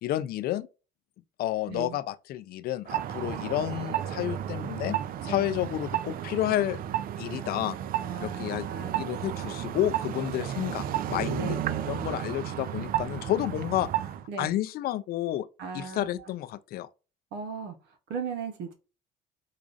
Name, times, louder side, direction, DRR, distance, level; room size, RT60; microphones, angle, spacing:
voice 1, 0.0-0.7 1.4-6.8 7.2-7.8 8.2-8.7 9.0-11.6 11.8-13.9 14.4-15.5 15.7-16.9, left 13 dB, 65° left, 0.4 m, -30 dB
voice 2, 1.7-2.0 5.2-5.5 8.0-9.0 11.3-11.6 14.3-14.5 15.6-16.2 17.3-17.7 18.1-18.7, right 6 dB, 85° right, 1.0 m, -37 dB
sound 1, 2.9-14.2, right 11 dB, 60° right, 0.4 m, -33 dB
5.0 x 2.4 x 2.5 m
cardioid pair, 110°, 17 cm